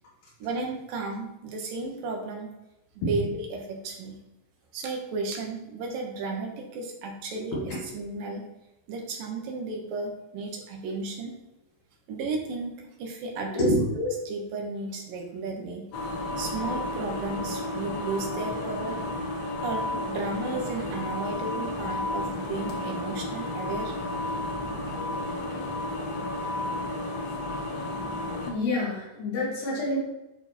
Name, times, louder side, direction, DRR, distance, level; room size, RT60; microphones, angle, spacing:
voice 1, 0.4-2.5 3.0-4.2 4.7-8.4 8.9-11.3 12.1-15.9 16.4-19.0 19.6-23.9, right 3 dB, 85° right, 1 dB, 3.1 m, -34 dB
sound 1, 15.9-28.5, left 2 dB, 60° left, 1.0 m, -32 dB
voice 2, 28.4-30.0, left 1 dB, 85° left, -6 dB, 3.8 m, -26 dB
11.0 x 4.2 x 4.4 m, 0.96 s
omnidirectional pair, 3.8 m